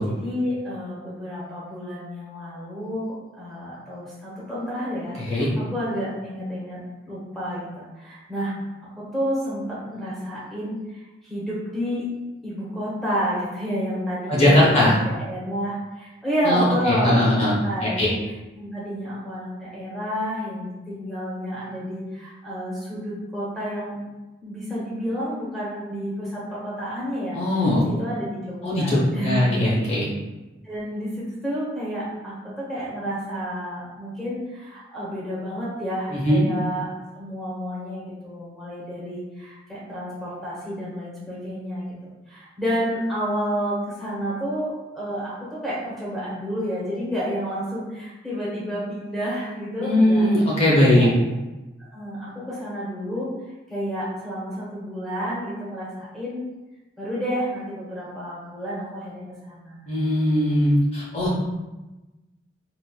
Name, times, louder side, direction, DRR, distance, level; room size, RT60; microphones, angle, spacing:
voice 1, 0.1-6.8 7.1-8.5 8.9-12.0 12.4-18.1 18.5-24.0 24.4-27.4 27.8-29.5 30.6-36.9 37.1-41.9 42.3-50.3 50.7-51.1 51.8-53.3 53.7-56.4 57.0-59.8, equal, ahead, -8 dB, 0.8 m, -30 dB
voice 2, 14.3-15.0 16.4-17.5 17.8-18.1 27.3-27.8 28.6-30.1 36.1-36.4 49.8-51.1 59.9-61.3, left 1 dB, 30° left, -6 dB, 0.6 m, -19 dB
3.9 x 2.4 x 2.3 m, 1.1 s
head